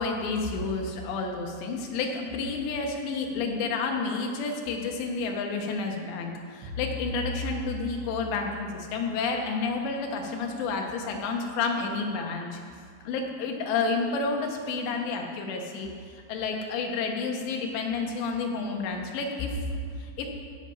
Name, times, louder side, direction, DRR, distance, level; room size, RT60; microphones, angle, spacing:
voice 1, 0.0-12.6 13.0-15.9 16.3-20.3, left 4 dB, 70° left, 2 dB, 3.2 m, -30 dB
Bowed string instrument, 6.6-10.8, left 1 dB, 80° right, 4.6 m, -39 dB
16.0 x 7.1 x 5.3 m, 2.1 s
omnidirectional pair, 5.6 m